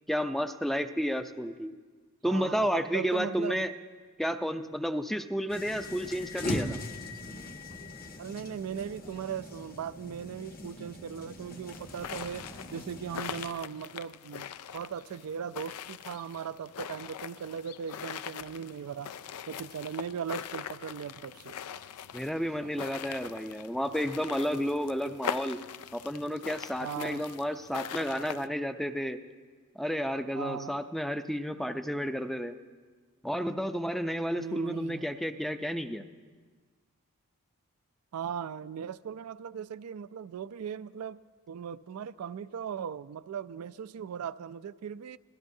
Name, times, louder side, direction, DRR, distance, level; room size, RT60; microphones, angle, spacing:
voice 1, 0.1-1.7 2.2-3.7 4.2-6.8 22.1-25.6 25.9-29.2 29.8-32.6 33.2-36.0, equal, ahead, 0.4 m, -31 dB
voice 2, 2.3-3.7 8.2-19.1 19.5-21.6 26.8-27.3 30.3-30.8 34.4-35.1 38.1-41.2 41.5-45.2, right 7 dB, 75° right, 0.4 m, -38 dB
sound 1, 5.5-13.5, left 1 dB, 45° left, 1.1 m, -41 dB
sound 2, 11.7-28.5, left 8 dB, 85° left, 0.4 m, -42 dB
26.0 x 17.0 x 2.7 m
head